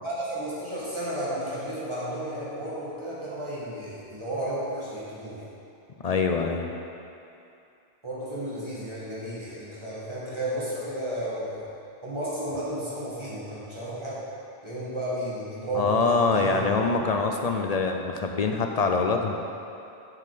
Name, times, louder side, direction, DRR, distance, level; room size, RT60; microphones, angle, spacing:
voice 1, 0.0-5.5 8.0-11.7 12.0-14.2 14.6-16.6, right 1 dB, 30° right, -8 dB, 1.9 m, -33 dB
voice 2, 6.0-6.7 15.7-19.4, left 4 dB, 50° left, 3 dB, 0.5 m, -24 dB
7.6 x 5.7 x 4.9 m, 2.7 s
omnidirectional pair, 1.0 m